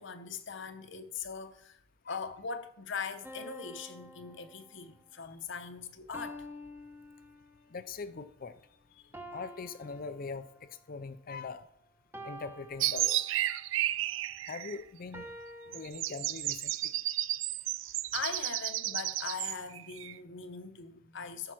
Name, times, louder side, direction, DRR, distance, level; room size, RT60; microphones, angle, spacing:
voice 1, 0.0-1.8 2.1-6.5 15.7-15.8 18.1-21.5, left 5 dB, 65° left, 0.9 m, -41 dB
sound 1, 3.2-5.0 6.1-7.8 9.1-10.8 12.1-13.6 15.1-15.9, equal, 10° right, 1.0 m, -48 dB
voice 2, 7.7-8.6 9.3-11.7 12.2-13.2 14.5-15.3 15.7-16.9, left 4 dB, 45° left, 0.5 m, -42 dB
sound 2, 12.8-14.8 15.7-20.1, right 14 dB, 70° right, 0.4 m, -32 dB
13.0 x 5.6 x 6.1 m
head